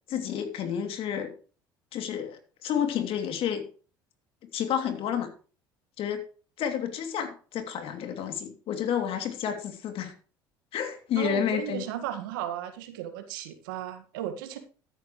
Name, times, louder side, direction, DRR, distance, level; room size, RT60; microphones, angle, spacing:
voice 1, 0.1-1.3 1.9-3.6 4.5-5.3 6.0-6.2 6.6-10.1 10.7-11.9, left 9 dB, 55° left, 6 dB, 2.8 m, -30 dB
voice 2, 11.2-14.6, right 11 dB, 80° right, 8 dB, 1.7 m, -35 dB
13.0 x 10.5 x 3.2 m, 0.38 s
hypercardioid pair, 70°, 11 cm